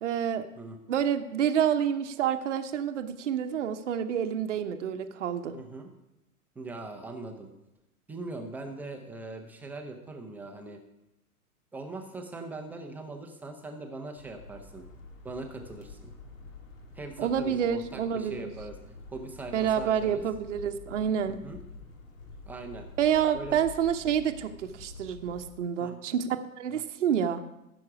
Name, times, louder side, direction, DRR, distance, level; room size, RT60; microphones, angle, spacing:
voice 1, 0.0-0.4 0.9-5.6 17.2-18.5 19.5-21.4 23.0-27.4, right 8 dB, 55° right, 8 dB, 0.9 m, -28 dB
voice 2, 5.5-5.9 6.6-7.5 8.1-10.8 11.7-14.8 15.2-16.1 17.0-20.2 21.3-21.6 22.5-22.9 23.3-23.6 25.8-26.0 26.7-26.8, right 2 dB, 5° right, 3 dB, 0.6 m, -41 dB
sound 1, 14.2-25.5, left 3 dB, 60° left, 1.9 m, -47 dB
15.0 x 6.3 x 4.8 m, 0.89 s
figure-of-eight pair, 105°, 44 cm